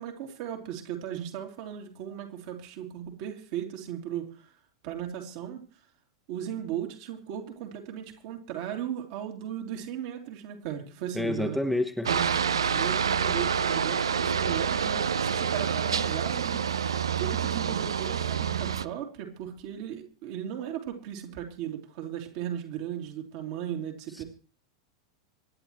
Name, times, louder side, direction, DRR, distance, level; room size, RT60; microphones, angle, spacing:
voice 1, 0.0-4.4 4.8-5.6 6.3-11.6 12.1-16.6 17.2-24.2, right 10 dB, 50° right, 2 dB, 3.2 m, -36 dB
voice 2, 11.1-12.1, left 1 dB, ahead, 6 dB, 1.4 m, -28 dB
Aircraft, 12.1-18.9, right 7 dB, 70° right, 0.6 m, -27 dB
26.0 x 10.5 x 3.2 m, 0.37 s
figure-of-eight pair, 90°, 3 cm